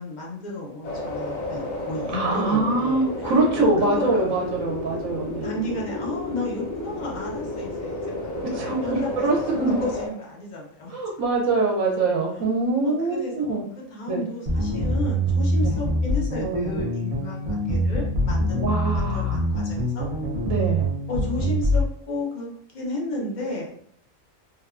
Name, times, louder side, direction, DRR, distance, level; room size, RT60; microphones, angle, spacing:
voice 1, 0.0-3.3 3.8-4.7 5.4-8.0 8.5-9.4 9.8-11.0 12.8-20.1 21.1-22.5 22.7-23.8, left 2 dB, 45° left, -3 dB, 0.6 m, -33 dB
sound 1, 0.8-10.1, left 2 dB, 75° left, 1.3 m, -32 dB
voice 2, 2.1-5.5 8.5-9.8 10.9-13.6 14.1-14.2 15.6-15.7 18.6-19.4 20.5-20.8, right 3 dB, 70° right, -1 dB, 1.0 m, -24 dB
sound 2, 14.5-21.8, equal, 50° right, 0.4 m, -24 dB
2.9 x 2.2 x 2.4 m, 0.65 s
omnidirectional pair, 1.4 m